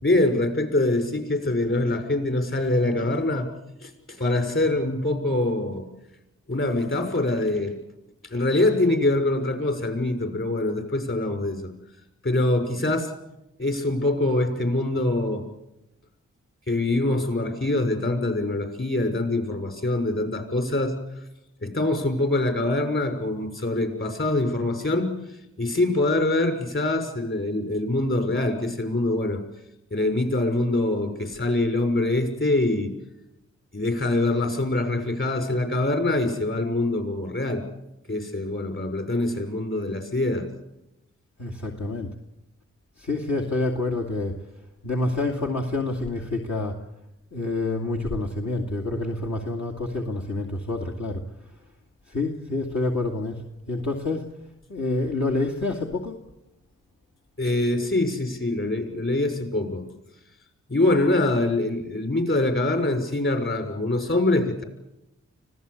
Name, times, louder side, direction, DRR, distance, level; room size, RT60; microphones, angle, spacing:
voice 1, 0.0-3.5 3.8-5.9 6.5-7.8 8.2-11.7 12.2-13.1 13.6-15.4 16.7-21.0 21.6-25.1 25.6-29.4 29.9-32.9 33.7-37.6 38.1-40.5 57.4-59.8 60.7-64.6, left 2 dB, 40° left, 5 dB, 6.4 m, -24 dB
voice 2, 41.4-42.1 43.0-44.4 44.8-46.8 47.3-51.2 52.1-53.4 53.7-54.3 54.7-56.2, left 2 dB, 65° left, 0 dB, 2.4 m, -27 dB
25.0 x 16.5 x 8.4 m, 0.90 s
cardioid pair, 45°, 31 cm